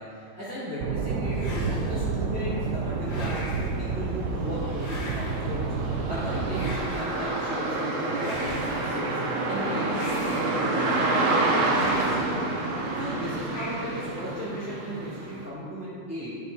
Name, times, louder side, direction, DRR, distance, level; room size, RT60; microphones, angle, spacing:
voice 1, 0.0-5.7 6.1-9.2 9.5-12.4 12.9-16.3, equal, 5° right, -14 dB, 3.1 m, -36 dB
sound 1, 0.8-6.8, right 4 dB, 70° right, 0.8 m, -29 dB
sound 2, 1.3-2.1 3.0-3.8 4.8-5.6 6.5-7.3 8.1-9.0 9.9-10.8 11.7-12.4 13.5-14.2, left 2 dB, 85° left, 2.6 m, -40 dB
sound 3, 2.1-2.2 2.6-15.5, right 2 dB, 50° right, 1.1 m, -29 dB
10.5 x 6.9 x 5.8 m, 2.2 s
omnidirectional pair, 2.4 m